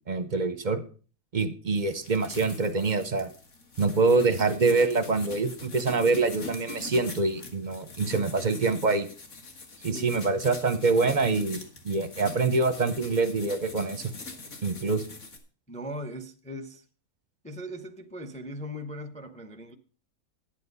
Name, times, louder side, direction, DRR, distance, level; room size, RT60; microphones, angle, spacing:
voice 1, 0.1-0.8 1.3-3.3 3.8-9.1 9.8-14.1 14.6-15.1, right 3 dB, 40° right, 0.7 m, -25 dB
sound 1, 1.7-15.4, left 3 dB, 55° left, 1.9 m, -43 dB
voice 2, 9.8-10.1 15.7-16.8 17.4-19.7, equal, 5° left, 0.6 m, -39 dB
10.5 x 8.5 x 5.4 m
omnidirectional pair, 1.6 m